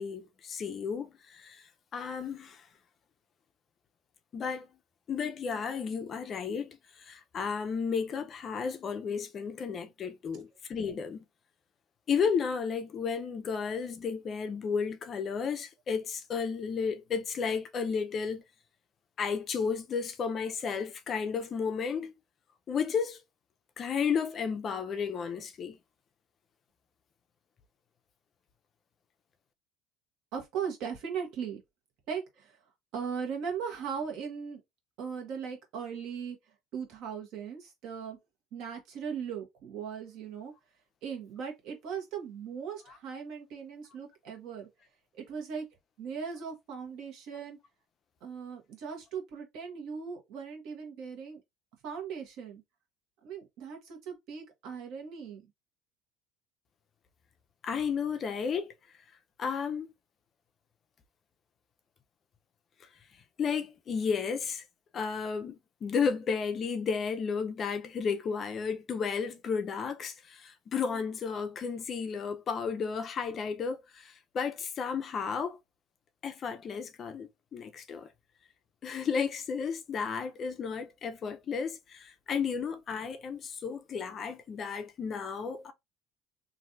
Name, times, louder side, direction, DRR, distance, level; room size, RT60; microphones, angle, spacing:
voice 1, 0.0-2.7 4.3-4.7 5.1-11.2 12.1-18.4 19.2-22.1 22.7-23.2 23.8-25.8 57.6-58.7 59.4-59.9 63.4-64.6 64.9-75.6 76.2-78.1 78.8-85.7, left 6 dB, 30° left, 0.4 m, -33 dB
voice 2, 30.3-31.6 32.1-32.6 32.9-34.6 35.0-36.4 36.7-38.2 38.5-40.5 41.0-44.7 45.2-45.6 46.0-47.6 48.2-51.4 51.8-52.6 53.2-55.4, right 7 dB, 60° right, 1.3 m, -38 dB
3.1 x 2.5 x 2.6 m
cardioid pair, 155°, 0 cm